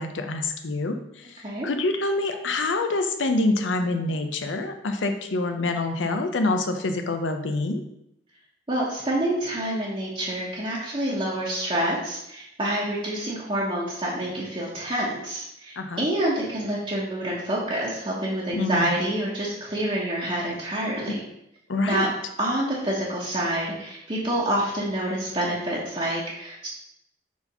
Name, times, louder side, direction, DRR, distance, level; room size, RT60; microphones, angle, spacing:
voice 1, 0.0-7.8 15.8-16.0 18.5-19.0 21.1-21.2 21.7-22.1, left 2 dB, 90° left, 6 dB, 0.6 m, -26 dB
voice 2, 8.7-21.2 21.9-22.1 22.4-26.7, right 1 dB, 30° right, -6 dB, 1.1 m, -27 dB
4.7 x 4.3 x 5.3 m, 0.80 s
head